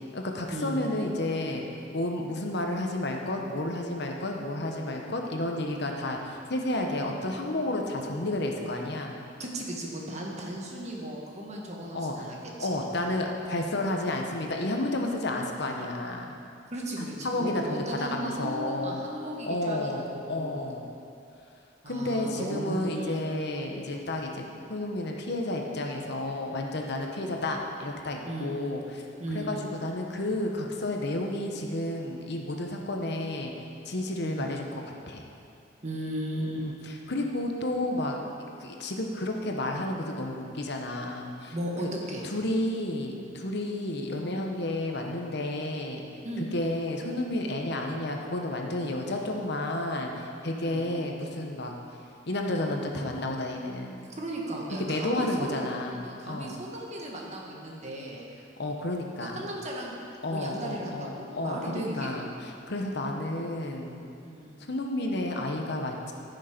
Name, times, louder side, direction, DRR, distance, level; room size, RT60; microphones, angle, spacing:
voice 1, 0.1-1.7 1.9-9.1 11.9-12.2 12.6-16.3 17.0-19.0 19.5-20.8 21.9-24.4 24.7-29.0 29.3-33.5 33.9-34.7 35.1-35.3 36.6-36.7 37.1-38.2 38.6-41.5 41.8-41.9 42.2-46.0 46.4-51.7 52.3-54.1 54.9-56.0 56.3-56.5 58.6-59.5 60.2-64.0 64.7-66.1, left 1 dB, 60° left, 2 dB, 1.1 m, -31 dB
voice 2, 9.4-12.7 16.7-20.7 21.8-23.2 28.2-28.6 29.2-29.5 34.2-34.5 35.8-36.7 41.5-42.2 46.2-46.5 50.5-50.9 54.1-58.2 59.3-59.9 60.2-62.1 64.2-64.5, right 1 dB, 35° right, -2 dB, 1.7 m, -36 dB
14.5 x 6.5 x 5.2 m, 2.6 s
head